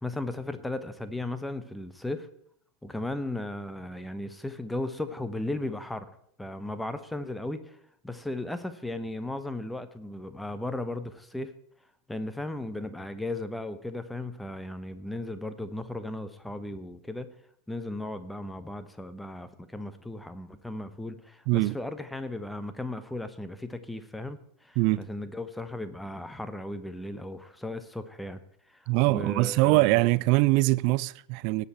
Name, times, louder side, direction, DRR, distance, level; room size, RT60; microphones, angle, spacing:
voice 1, 0.0-2.3 2.8-6.1 6.4-7.8 8.0-11.5 12.1-17.3 17.7-28.4 28.7-29.9, left 1 dB, 5° left, 1.0 m, -36 dB
voice 2, 28.9-31.7, right 21 dB, 50° right, 0.4 m, -23 dB
18.0 x 6.7 x 4.4 m
figure-of-eight pair, 85°, 0 cm